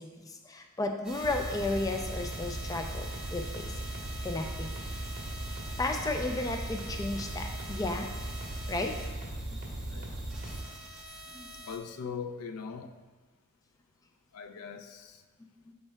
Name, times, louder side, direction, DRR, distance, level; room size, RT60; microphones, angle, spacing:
voice 1, 0.0-3.7 4.2-4.7 5.8-8.1 8.7-8.9 11.3-11.5 15.7-15.8, left 2 dB, 15° left, 0.3 m, -33 dB
sound 1, 1.0-11.8, right 1 dB, 5° right, 1.0 m, -45 dB
sound 2, 1.2-10.6, right 1 dB, 35° right, 1.3 m, -38 dB
voice 2, 11.7-13.0 14.3-15.2, left 6 dB, 85° left, 0.4 m, -40 dB
11.5 x 4.4 x 2.2 m
head